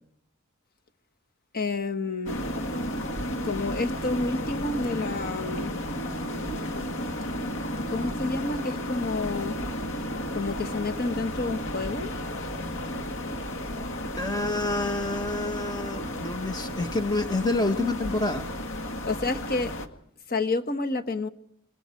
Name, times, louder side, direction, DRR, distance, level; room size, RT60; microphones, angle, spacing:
voice 1, 1.5-2.4 3.4-5.7 7.9-9.6 10.3-12.1 19.0-19.8 20.3-21.3, left 3 dB, 45° left, 1.4 m, -29 dB
sound 1, 2.3-19.9, left 1 dB, 60° left, 1.9 m, -33 dB
voice 2, 14.2-18.5, left 2 dB, 20° left, 1.5 m, -28 dB
27.0 x 22.5 x 4.6 m
head